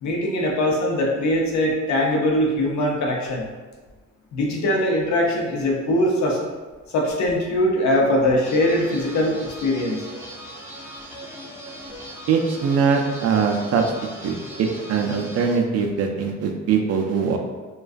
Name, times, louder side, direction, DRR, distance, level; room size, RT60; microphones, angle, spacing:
voice 1, 0.0-3.5 4.3-6.4 6.9-10.0, left 1 dB, 70° left, -1 dB, 0.6 m, -21 dB
sound 1, 8.4-15.6, equal, 10° right, 0.5 m, -39 dB
voice 2, 12.3-13.9 14.2-14.3 14.9-17.4, right 6 dB, 55° right, 2 dB, 0.4 m, -21 dB
2.3 x 2.3 x 2.4 m, 1.3 s
cardioid pair, 90°, 30 cm